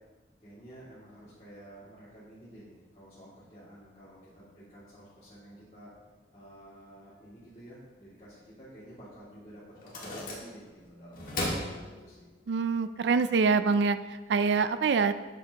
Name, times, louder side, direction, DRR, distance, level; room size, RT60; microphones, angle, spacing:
voice 1, 0.4-5.9 6.3-12.3, right 1 dB, 35° left, -11 dB, 2.4 m, -51 dB
sound 1, 9.8-10.8 11.1-12.5, left 1 dB, 50° left, 1.9 m, -36 dB
voice 2, 12.5-14.0 14.3-15.1, right 5 dB, 80° right, 12 dB, 0.4 m, -25 dB
11.5 x 7.8 x 2.9 m, 1.3 s
head